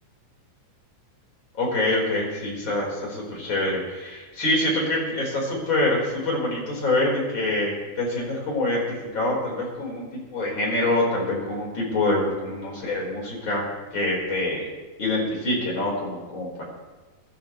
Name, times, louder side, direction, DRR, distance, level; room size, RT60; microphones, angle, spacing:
voice 1, 1.5-13.6 13.9-14.6 15.0-16.6, left 2 dB, 35° left, -4 dB, 5.0 m, -25 dB
24.0 x 13.0 x 3.2 m, 1.3 s
omnidirectional pair, 4.0 m